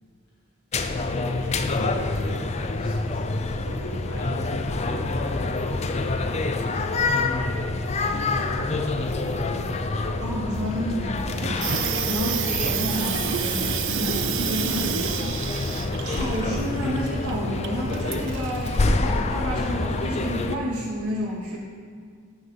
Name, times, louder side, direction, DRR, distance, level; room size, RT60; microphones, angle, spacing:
sound 1, 0.7-20.6, left 3 dB, 30° left, 0.4 m, -27 dB
voice 1, 0.8-9.5 14.0-14.2, equal, 70° left, -5 dB, 1.3 m, -38 dB
voice 2, 10.1-21.6, equal, 85° right, -4 dB, 2.4 m, -31 dB
Water tap faucet / Sink (filling or washing), 11.4-18.9, right 7 dB, 55° right, 0.5 m, -29 dB
7.5 x 6.4 x 5.8 m, 2.1 s
head